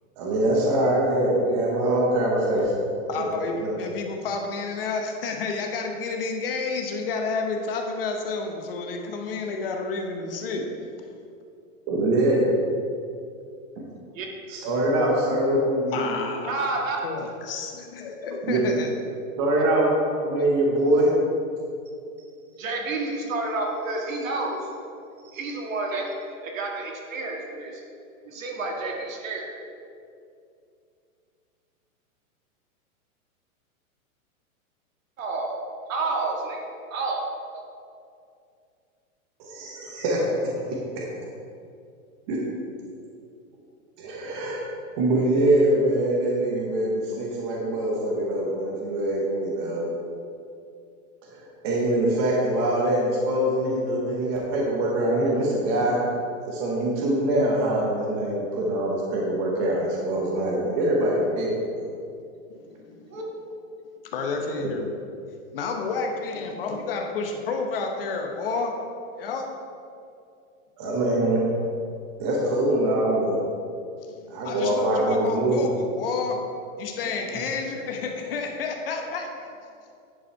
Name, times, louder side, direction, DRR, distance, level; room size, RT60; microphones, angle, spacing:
voice 1, 0.2-2.8 3.2-3.7 11.9-12.5 13.8-13.9 14.5-16.3 18.4-18.6 19.4-19.9 20.2-21.2 39.4-40.2 42.3-42.4 44.0-44.7 45.0-49.9 51.3-56.0 56.4-61.9 70.8-71.5 72.2-73.4 74.3-75.6, right 1 dB, 20° right, -3 dB, 0.7 m, -23 dB
voice 2, 3.1-10.6 15.9-16.5 17.0-18.9 20.4-20.5 62.5-63.2 64.1-64.9 65.5-68.7 69.1-69.5 74.0-76.4 76.8-79.7, left 4 dB, 40° left, 3 dB, 0.8 m, -30 dB
voice 3, 16.5-17.0 22.2-22.3 22.6-24.7 25.2-26.1 26.4-27.8 28.2-29.5 35.2-35.6 35.9-37.3 37.5-37.6 63.1-63.2, right 3 dB, 65° right, 0 dB, 1.8 m, -30 dB
10.0 x 5.3 x 4.5 m, 2.5 s
supercardioid pair, 170°, 43 cm